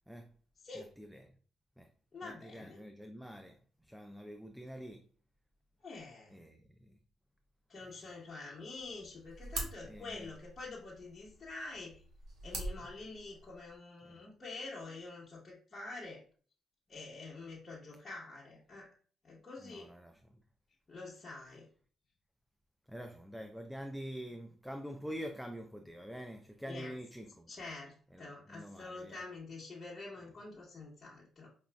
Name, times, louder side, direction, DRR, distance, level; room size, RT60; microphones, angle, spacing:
voice 1, 0.8-1.3 1.8-1.9 2.2-5.0 6.3-6.9 9.8-10.3 14.0-14.2 19.6-20.4 22.9-27.5 28.1-29.2 30.2-30.3, equal, 5° right, 0.3 m, -46 dB
voice 2, 2.1-2.8 5.8-6.4 7.7-12.0 12.4-16.2 16.9-18.9 19.2-19.9 20.9-21.7 26.7-26.9 27.5-31.5, left 3 dB, 35° left, 1.0 m, -47 dB
sound 1, 8.8-13.8, right 2 dB, 65° right, 1.0 m, -45 dB
4.9 x 2.4 x 2.2 m
cardioid pair, 90°, 0 cm